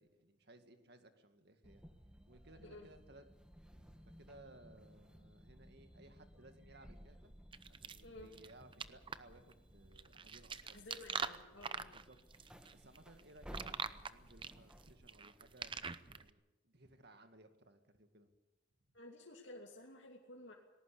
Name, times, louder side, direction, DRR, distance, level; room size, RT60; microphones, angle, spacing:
voice 1, 0.0-1.8 2.3-3.3 3.7-7.3 7.7-11.0 11.9-12.2 12.7-18.3, right 1 dB, 55° right, 7 dB, 2.1 m, -61 dB
sound 1, 1.6-14.9, equal, 5° right, 1.6 m, -59 dB
sound 2, 7.5-16.3, right 5 dB, 25° right, 0.7 m, -45 dB
voice 2, 10.7-11.9 18.9-20.5, left 2 dB, 70° left, -1 dB, 2.7 m, -53 dB
19.5 x 18.0 x 8.5 m, 1.0 s
head